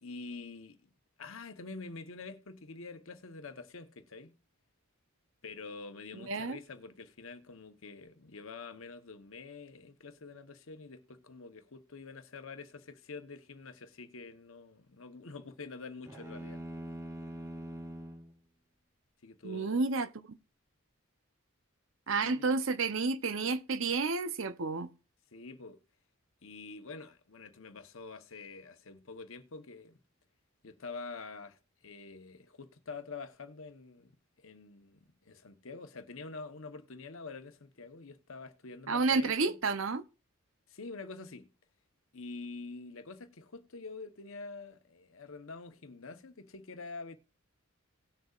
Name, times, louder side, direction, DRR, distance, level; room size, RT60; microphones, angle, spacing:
voice 1, 0.0-0.9 1.2-4.4 5.4-16.6 19.2-19.8 22.2-22.4 25.3-25.8 26.4-30.0 30.6-39.6 40.7-41.5 42.1-47.2, left 4 dB, 70° left, 1.0 m, -46 dB
sound 1, 16.1-18.3, right 1 dB, 15° right, 0.9 m, -43 dB
voice 2, 19.4-20.4 22.1-24.9 38.9-40.0, right 4 dB, 65° right, 0.7 m, -30 dB
18.5 x 6.5 x 2.4 m
head